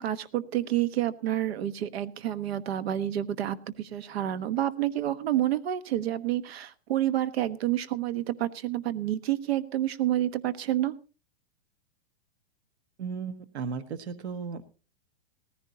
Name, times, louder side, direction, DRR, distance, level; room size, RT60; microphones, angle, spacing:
voice 1, 0.0-10.9, right 12 dB, 70° right, 14 dB, 1.2 m, -29 dB
voice 2, 13.0-14.6, right 5 dB, 90° right, 10 dB, 1.4 m, -35 dB
18.5 x 15.0 x 2.8 m, 0.34 s
supercardioid pair, 160°, 32 cm